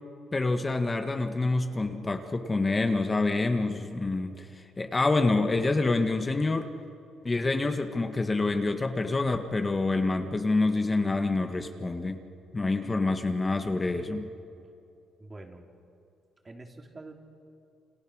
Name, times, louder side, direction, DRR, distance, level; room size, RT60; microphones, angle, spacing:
voice 1, 0.3-6.7 7.2-12.2 12.5-14.3, left 3 dB, 25° left, 5 dB, 1.9 m, -27 dB
voice 2, 15.2-15.7 16.4-17.1, right 2 dB, 25° right, 2 dB, 3.4 m, -45 dB
29.0 x 27.0 x 6.5 m, 2.6 s
cardioid pair, 90°, 0 cm